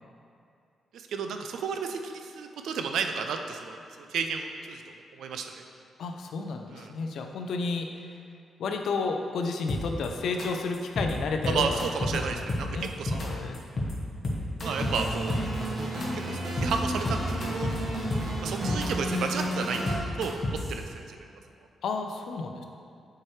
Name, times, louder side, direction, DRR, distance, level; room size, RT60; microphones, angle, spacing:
voice 1, 0.9-5.5 6.7-6.9 11.5-12.7 13.0-13.4 14.6-15.4 16.3-17.7 18.4-19.8 20.2-21.3, right 5 dB, 85° right, 5 dB, 0.4 m, -32 dB
voice 2, 6.0-8.2 8.6-11.8 12.1-13.6 21.8-22.6, left 4 dB, 75° left, 4 dB, 0.5 m, -32 dB
sound 1, 9.7-10.1 10.4-10.5 10.7-11.1 11.4-12.2 12.5-13.3 13.5-13.9 14.2-15.7 16.0-16.1 16.3-16.7 17.0-17.8 18.1-18.9 19.2-20.7, left 1 dB, 40° left, 1.0 m, -30 dB
sound 2, 14.6-19.9, right 1 dB, 55° right, 1.3 m, -32 dB
7.4 x 4.7 x 3.2 m, 2.4 s
cardioid pair, 120°, 0 cm